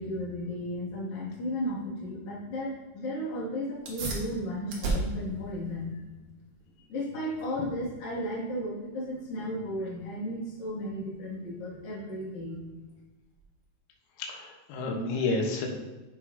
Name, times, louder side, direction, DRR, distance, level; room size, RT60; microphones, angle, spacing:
voice 1, 0.0-6.0 6.9-12.6, equal, 40° left, -7 dB, 2.3 m, -34 dB
sound 1, 3.7-13.8, right 2 dB, 65° right, 2.0 m, -40 dB
voice 2, 14.2-15.7, left 3 dB, 90° left, 1 dB, 3.4 m, -30 dB
8.9 x 5.8 x 2.8 m, 1.1 s
omnidirectional pair, 5.4 m